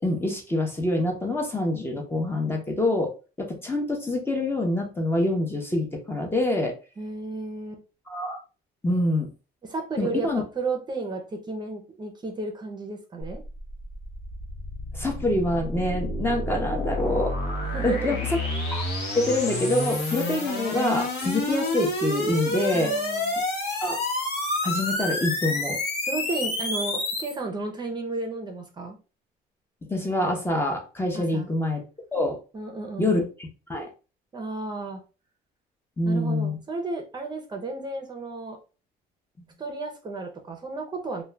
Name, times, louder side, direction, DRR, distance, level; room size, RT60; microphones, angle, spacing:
voice 1, 0.0-3.1 3.4-6.7 8.1-8.4 8.8-9.3 10.0-10.4 14.9-17.3 17.8-18.4 18.7-18.8 19.1-22.9 23.8-24.0 24.6-25.8 29.9-31.8 32.1-32.4 33.0-33.2 33.7-33.9 36.0-36.6, left 1 dB, 15° left, 1 dB, 0.6 m, -26 dB
voice 2, 7.0-7.8 9.6-13.4 17.7-18.2 22.7-23.3 26.1-29.0 31.1-31.5 32.5-33.1 34.3-35.0 36.0-38.6 39.6-41.2, right 3 dB, 25° right, 3 dB, 0.6 m, -33 dB
sound 1, 13.2-27.4, left 2 dB, 80° left, 0.9 m, -29 dB
2.3 x 2.2 x 3.2 m, 0.33 s
cardioid pair, 110°, 17 cm